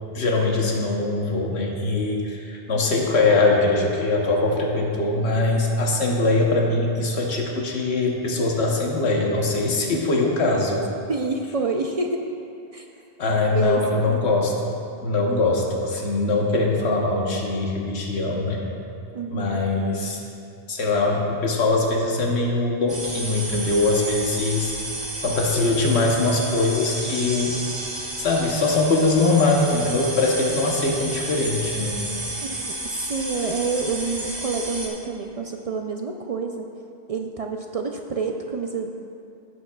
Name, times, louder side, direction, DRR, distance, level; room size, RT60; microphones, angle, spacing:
voice 1, 0.1-10.8 13.2-18.7 19.3-20.2 20.7-24.7 25.2-27.6 28.2-32.0, left 2 dB, 85° left, 0 dB, 1.2 m, -22 dB
voice 2, 11.1-12.2 12.7-12.9 13.5-14.2 19.1-19.6 32.4-32.7 33.1-36.7 37.1-38.9, right 4 dB, 55° right, 3 dB, 0.4 m, -28 dB
sound 1, 22.9-34.9, right 1 dB, 25° right, 1.1 m, -32 dB
15.5 x 7.1 x 2.3 m, 2.6 s
omnidirectional pair, 1.1 m